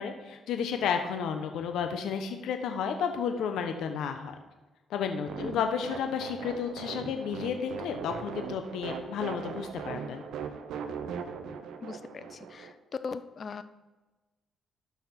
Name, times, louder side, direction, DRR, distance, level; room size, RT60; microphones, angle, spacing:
voice 1, 0.0-4.3 4.9-10.2, left 7 dB, 80° left, 6 dB, 1.0 m, -32 dB
sound 1, 5.3-12.7, right 6 dB, 80° right, 0.9 m, -39 dB
voice 2, 11.8-12.8 13.0-13.6, left 5 dB, 45° left, 12 dB, 0.6 m, -40 dB
13.0 x 5.9 x 4.4 m, 1.1 s
cardioid pair, 90°, 0 cm